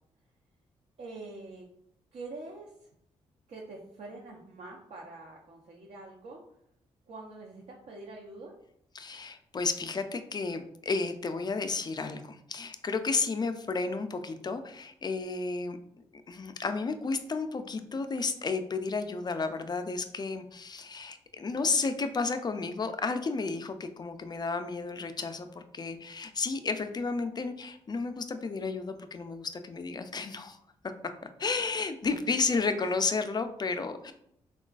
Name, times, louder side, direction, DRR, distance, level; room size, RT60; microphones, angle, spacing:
voice 1, 1.0-1.7 2.1-2.9 3.5-6.4 7.1-8.5, right 2 dB, 55° right, -2 dB, 0.6 m, -45 dB
voice 2, 8.9-15.8 16.3-30.6 31.4-34.1, left 4 dB, 30° left, 8 dB, 0.4 m, -32 dB
3.7 x 2.3 x 2.4 m, 0.74 s
supercardioid pair, 50°, 13 cm